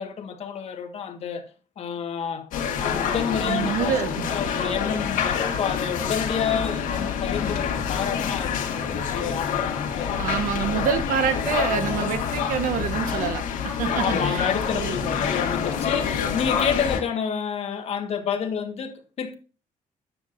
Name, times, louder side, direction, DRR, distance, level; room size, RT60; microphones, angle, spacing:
voice 1, 0.0-1.5 1.8-4.0 4.2-10.3 14.0-19.3, left 7 dB, 50° left, 1.4 m, -29 dB
sound 1, 2.5-17.0, left 7 dB, 85° left, 1.8 m, -27 dB
voice 2, 3.4-4.3 10.2-15.2, right 8 dB, 80° right, 1.2 m, -27 dB
9.5 x 7.5 x 2.5 m
cardioid pair, 150°, 14 cm